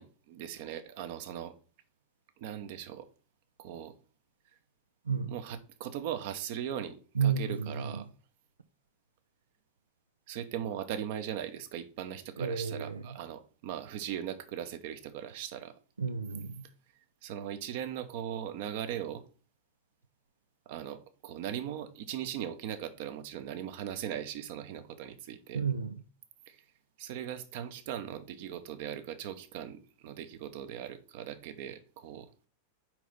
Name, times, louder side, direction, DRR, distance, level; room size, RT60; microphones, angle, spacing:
voice 1, 0.0-1.5 2.4-3.1 3.6-3.9 5.3-8.0 10.3-15.8 17.2-19.2 20.7-25.6 26.5-26.6 27.0-32.3, right 10 dB, 55° right, 0.9 m, -39 dB
voice 2, 5.0-5.4 7.1-8.1 12.4-13.1 16.0-16.7 25.5-26.0, right 6 dB, 80° right, 0.5 m, -32 dB
5.0 x 4.5 x 5.5 m
figure-of-eight pair, 90°, 0 cm